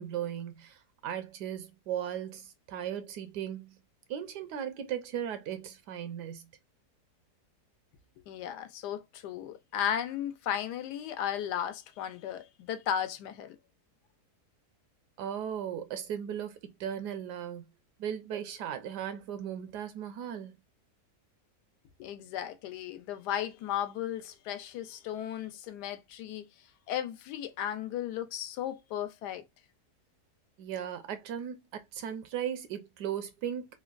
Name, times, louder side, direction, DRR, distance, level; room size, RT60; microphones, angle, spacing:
voice 1, 0.0-3.8 4.1-6.5 15.2-17.6 18.0-20.6 30.6-33.7, right 9 dB, 85° right, 1.3 m, -37 dB
voice 2, 8.3-13.6 22.0-26.5 26.9-29.5, left 10 dB, 85° left, 1.2 m, -35 dB
3.7 x 2.2 x 2.3 m
omnidirectional pair, 1.7 m